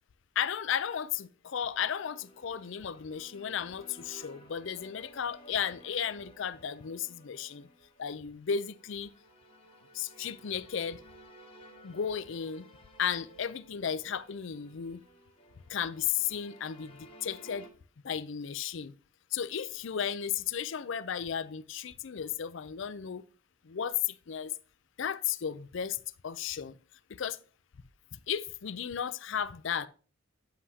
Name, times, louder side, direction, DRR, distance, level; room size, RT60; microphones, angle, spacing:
voice 1, 0.4-7.7 8.0-9.1 9.9-11.0 11.8-12.7 13.0-15.0 15.7-17.7 18.0-18.9 19.3-23.2 23.6-24.5 25.0-26.7 27.1-27.4 28.3-29.9, left 8 dB, 60° left, 0.4 m, -34 dB
sound 1, 1.6-17.7, equal, 25° left, 1.7 m, -56 dB
9.7 x 7.6 x 2.8 m
head